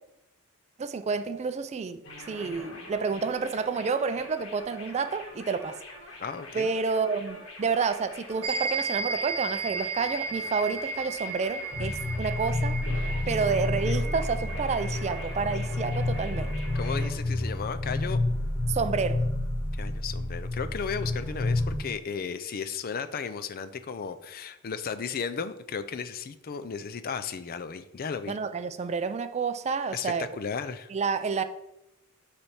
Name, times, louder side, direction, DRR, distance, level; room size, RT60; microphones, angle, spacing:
voice 1, 0.8-2.0 2.3-5.8 6.5-12.8 13.3-16.5 18.7-19.2 28.3-30.3 30.9-31.4, right 5 dB, 30° right, 0.4 m, -29 dB
sound 1, 2.0-17.1, left 1 dB, 65° left, 1.7 m, -44 dB
voice 2, 6.2-6.7 16.7-18.2 19.7-28.3 29.9-30.9, left 6 dB, 45° left, 0.4 m, -35 dB
sound 2, 8.4-17.1, right 4 dB, 75° right, 0.7 m, -35 dB
sound 3, 11.7-21.8, left 2 dB, 5° left, 1.6 m, -29 dB
6.9 x 3.3 x 5.7 m
head